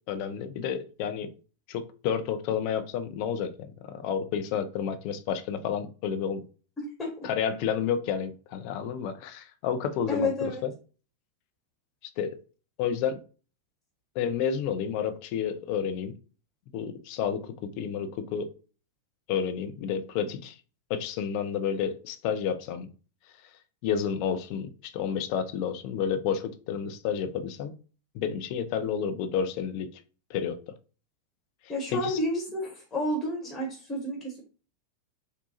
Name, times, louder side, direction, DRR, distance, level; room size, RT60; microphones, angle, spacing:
voice 1, 0.1-1.3 1.7-6.4 7.2-10.3 10.6-10.7 12.2-12.3 12.8-13.2 14.2-16.1 16.7-18.5 19.3-20.5 20.9-22.9 23.8-27.7 28.1-29.9 30.3-30.6 31.9-32.2, left 7 dB, 45° left, 9 dB, 0.4 m, -30 dB
voice 2, 6.8-7.1 10.1-10.6 31.7-34.4, left 1 dB, 15° left, -2 dB, 1.1 m, -30 dB
3.7 x 2.2 x 2.8 m, 0.37 s
figure-of-eight pair, 90°, 0 cm